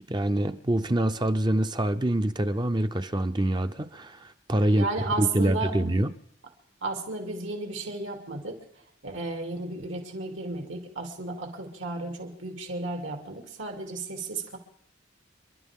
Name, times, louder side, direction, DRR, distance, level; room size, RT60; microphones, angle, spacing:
voice 1, 0.1-4.8 5.2-6.1, right 1 dB, 25° right, 0.6 m, -25 dB
voice 2, 4.7-5.7 6.8-8.5 9.0-14.6, right 3 dB, 80° right, 3.0 m, -33 dB
29.0 x 12.0 x 3.7 m
head